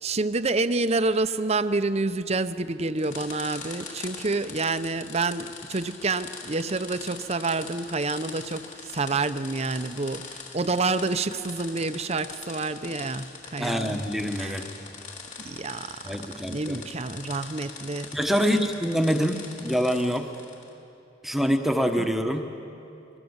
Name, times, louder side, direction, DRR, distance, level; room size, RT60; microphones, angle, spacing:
voice 1, 0.0-14.1 14.4-14.6 15.4-16.0 16.5-18.2 22.0-22.1, right 3 dB, 35° right, 0.8 m, -28 dB
sound 1, 3.0-20.7, left 5 dB, 40° left, 3.5 m, -42 dB
voice 2, 13.6-14.6 16.0-16.8 18.1-20.3 21.2-22.5, equal, ahead, 1.2 m, -25 dB
27.5 x 22.0 x 8.1 m
head